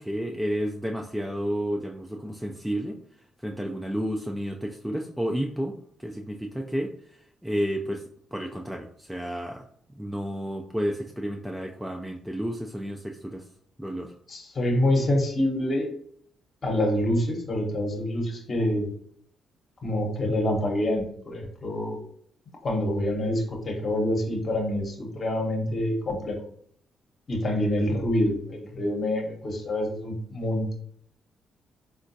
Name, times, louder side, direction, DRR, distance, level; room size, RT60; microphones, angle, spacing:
voice 1, 0.0-3.0 3.4-6.9 7.4-8.0 8.3-9.6 9.9-13.4 13.8-14.1, equal, 5° right, 2 dB, 0.3 m, -31 dB
voice 2, 14.3-15.9 16.6-18.9 19.8-22.0 22.6-26.3 27.3-30.7, left 1 dB, 50° left, 2 dB, 0.9 m, -26 dB
3.5 x 2.3 x 2.6 m, 0.64 s
supercardioid pair, 60°, 0 cm